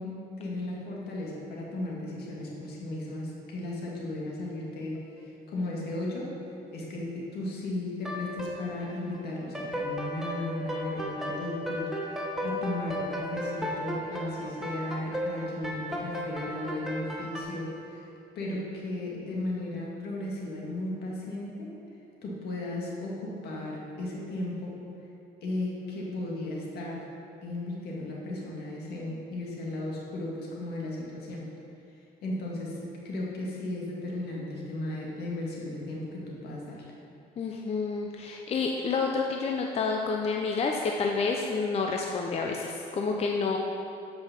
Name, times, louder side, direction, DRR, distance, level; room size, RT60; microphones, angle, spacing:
voice 1, 0.0-6.4 6.7-18.1 18.4-21.7 22.2-24.8 25.4-27.1 27.4-31.5 32.2-36.9, left 1 dB, 70° left, -3 dB, 2.0 m, -35 dB
sound 1, 8.0-9.2 9.5-17.4, equal, 5° right, 1.3 m, -34 dB
voice 2, 37.4-43.6, left 4 dB, 40° left, 1 dB, 0.6 m, -29 dB
8.1 x 5.6 x 6.0 m, 2.7 s
cardioid pair, 110°, 17 cm